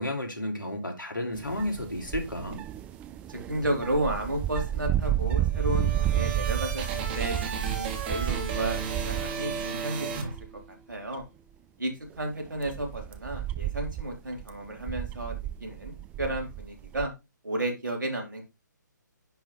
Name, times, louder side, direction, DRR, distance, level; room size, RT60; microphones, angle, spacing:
voice 1, 0.0-2.6, left 1 dB, 85° left, 2.8 m, -32 dB
sound 1, 1.3-9.8 10.1-10.6 11.1-11.2 12.1-17.1, right 12 dB, 10° right, 0.5 m, -32 dB
voice 2, 3.3-10.3 10.9-11.2 11.8-17.1 17.4-18.4, right 1 dB, 75° right, 3.1 m, -32 dB
sound 2, 5.3-10.9, right 5 dB, 30° right, 1.8 m, -34 dB
10.0 x 3.6 x 4.2 m
figure-of-eight pair, 140°, 10 cm